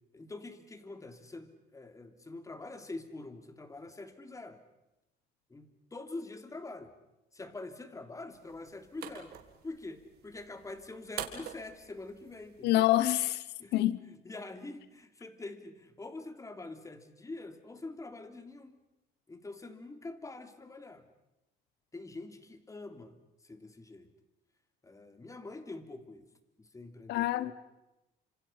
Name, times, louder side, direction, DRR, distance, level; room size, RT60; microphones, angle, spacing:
voice 1, 0.1-4.6 5.5-6.9 7.3-9.3 9.6-12.9 13.6-18.8 19.3-21.1 21.9-24.1 24.8-26.3 26.6-27.5, left 2 dB, 20° left, 3.1 m, -45 dB
sound 1, 8.3-13.3, right 10 dB, 70° right, 4.1 m, -47 dB
voice 2, 12.6-13.5 13.7-14.0 27.1-27.5, left 15 dB, 80° left, 1.0 m, -26 dB
30.0 x 27.0 x 5.8 m
cardioid pair, 110°, 17 cm